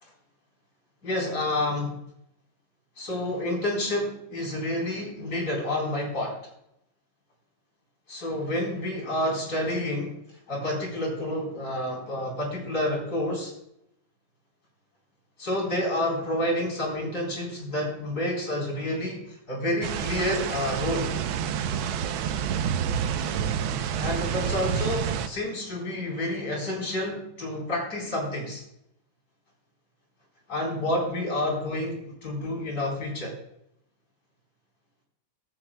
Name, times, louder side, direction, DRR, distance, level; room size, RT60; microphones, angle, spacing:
voice 1, 1.0-1.9 3.0-6.4 8.1-10.1 10.5-13.5 15.4-21.1 24.0-28.6 30.5-33.3, left 1 dB, 50° left, -1 dB, 4.5 m, -29 dB
sound 1, 19.8-25.3, right 8 dB, 85° right, 1.5 m, -28 dB
14.0 x 13.5 x 2.2 m, 0.77 s
omnidirectional pair, 2.1 m